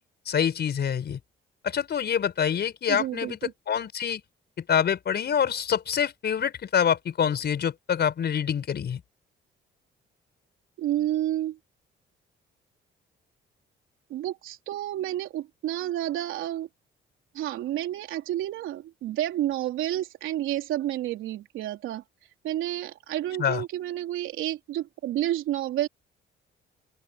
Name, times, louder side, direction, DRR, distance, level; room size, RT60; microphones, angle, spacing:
voice 1, 0.2-1.2 1.6-3.4 3.7-4.2 4.6-9.0 23.4-23.6, left 8 dB, 55° left, 5.1 m, -26 dB
voice 2, 2.9-3.5 10.8-11.6 14.1-16.7 17.3-22.0 22.4-25.9, right 13 dB, 90° right, 3.7 m, -30 dB
open air
cardioid pair, 90°, 20 cm